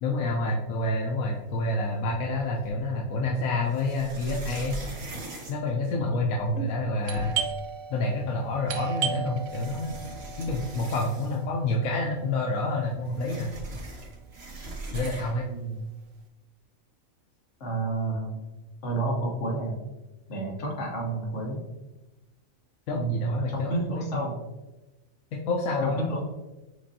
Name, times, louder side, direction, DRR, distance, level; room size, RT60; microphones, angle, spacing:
voice 1, 0.0-4.8 5.5-7.4 7.9-9.9 10.4-13.5 14.9-15.4 22.9-24.2 25.3-26.0, left 2 dB, 75° left, -1 dB, 1.0 m, -28 dB
sound 1, 2.1-2.8 3.6-6.4 6.8-6.9 7.1-7.6 8.7-8.8 9.4-11.6 11.9-12.0 12.3-15.5, right 2 dB, 50° right, 1.2 m, -40 dB
Doorbell, 7.0-12.5, right 7 dB, 70° right, 0.9 m, -35 dB
voice 2, 15.4-15.8 17.6-18.4 18.8-19.8 20.3-21.6 22.9-24.4 25.8-26.2, right 2 dB, 60° left, -1 dB, 1.3 m, -30 dB
6.1 x 2.6 x 2.7 m, 1.1 s
omnidirectional pair, 1.5 m